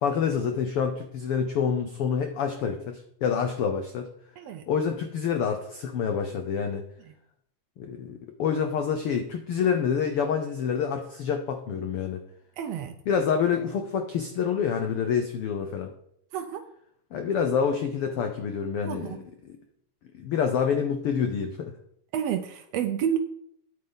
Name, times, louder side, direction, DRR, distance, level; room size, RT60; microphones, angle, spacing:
voice 1, 0.0-4.1 4.7-6.8 7.8-12.2 13.1-15.9 17.1-19.2 19.4-19.5 20.1-21.7, left 7 dB, 80° left, 6 dB, 1.2 m, -27 dB
voice 2, 12.6-12.9 16.3-16.6 18.9-19.2 22.1-23.2, right 9 dB, 80° right, 8 dB, 1.5 m, -29 dB
9.6 x 8.7 x 3.9 m, 0.70 s
omnidirectional pair, 3.5 m